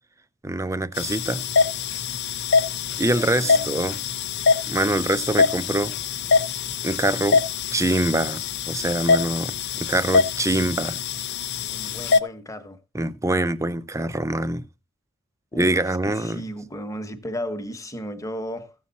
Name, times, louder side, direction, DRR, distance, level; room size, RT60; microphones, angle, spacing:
voice 1, 0.4-1.4 3.0-4.0 4.7-5.9 6.8-7.4 7.7-8.4 8.7-11.0 12.9-14.6 15.5-16.4, right 1 dB, 15° right, 0.6 m, -24 dB
sound 1, 1.0-12.2, left 5 dB, 55° left, 0.7 m, -24 dB
voice 2, 3.1-3.7 11.7-12.8 15.5-18.7, equal, 15° left, 1.2 m, -35 dB
16.0 x 7.4 x 4.1 m
head